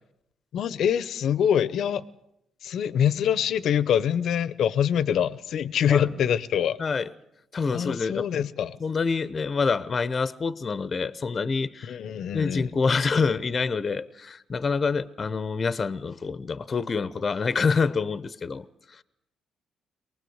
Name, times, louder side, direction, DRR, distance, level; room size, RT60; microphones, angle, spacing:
voice 1, 0.5-2.1 2.6-6.8 7.7-8.8 11.8-12.7, left 9 dB, 70° left, 0.8 m, -25 dB
voice 2, 6.8-7.1 7.5-8.3 8.8-12.0 12.3-19.0, left 5 dB, 35° left, 0.8 m, -27 dB
23.5 x 19.5 x 8.0 m
cardioid pair, 90°, 0 cm